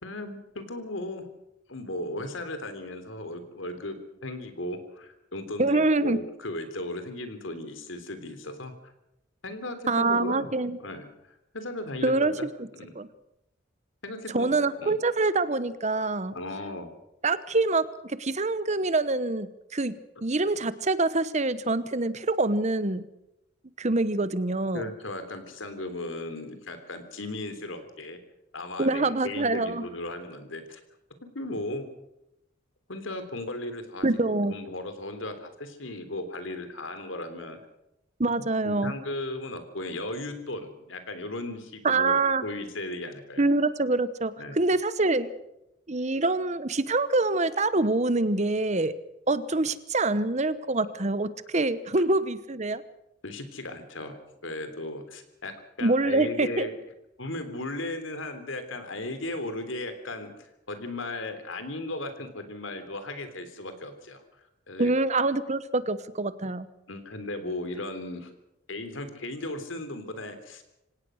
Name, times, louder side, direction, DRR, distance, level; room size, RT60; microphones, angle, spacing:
voice 1, 0.0-1.3 1.7-4.0 4.2-8.9 9.4-10.5 10.8-12.5 12.7-12.9 14.0-14.9 16.3-16.9 24.7-28.2 28.5-30.8 31.4-31.9 32.9-37.6 38.6-43.4 44.4-44.6 53.2-54.2 54.4-55.5 55.8-56.7 57.2-64.2 64.7-64.9 66.9-68.3 68.7-70.6, left 1 dB, 85° left, 9 dB, 3.5 m, -36 dB
voice 2, 5.6-6.2 9.9-10.8 12.0-12.3 12.6-12.7 12.9-13.1 14.3-16.3 17.2-23.0 23.8-24.9 28.8-29.8 34.0-34.5 38.2-38.9 41.8-42.4 43.4-45.3 45.9-48.9 49.3-52.8 55.8-56.7 64.8-66.7, right 2 dB, 35° right, 15 dB, 1.0 m, -25 dB
25.5 x 17.5 x 6.5 m, 0.85 s
head